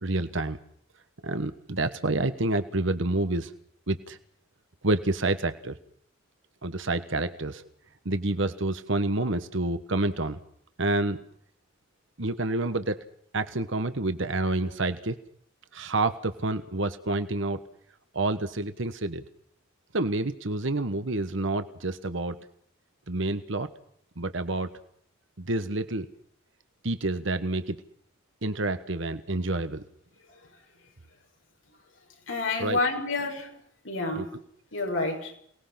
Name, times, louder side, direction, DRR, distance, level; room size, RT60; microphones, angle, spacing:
voice 1, 0.0-0.6 1.2-3.5 3.9-4.2 4.8-5.7 6.6-7.7 8.0-10.4 10.8-11.2 12.2-13.0 13.3-15.2 15.7-17.6 18.1-19.2 19.9-22.4 23.1-23.7 24.2-24.7 25.4-26.1 26.8-27.8 28.4-29.8 32.6-32.8 34.1-34.3, right 2 dB, 65° right, 10 dB, 1.3 m, -28 dB
voice 2, 32.3-33.5 33.9-34.3 34.7-35.3, left 3 dB, 70° left, 2 dB, 6.7 m, -28 dB
28.5 x 19.5 x 5.9 m, 0.65 s
head